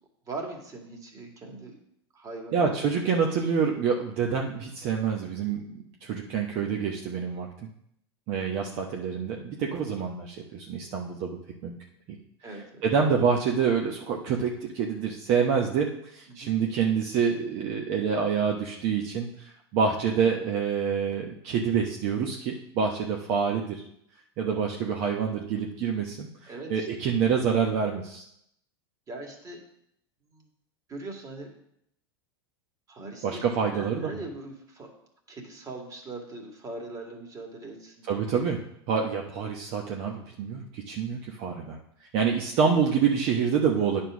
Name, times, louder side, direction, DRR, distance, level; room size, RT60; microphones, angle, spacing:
voice 1, 0.3-1.7 2.1-2.7 12.4-12.8 16.3-16.5 20.1-20.3 26.5-26.9 29.1-29.6 30.3-30.5 30.9-31.5 32.9-34.9 35.3-38.2, right 2 dB, 25° right, 1 dB, 2.2 m, -40 dB
voice 2, 2.5-7.5 8.3-11.4 11.6-11.8 12.1-12.2 12.8-23.8 24.4-28.2 33.2-34.1 38.1-38.6 38.9-41.8 42.1-44.0, right 6 dB, 50° right, 0 dB, 1.1 m, -27 dB
9.3 x 4.4 x 6.2 m, 0.74 s
hypercardioid pair, 110°, 14 cm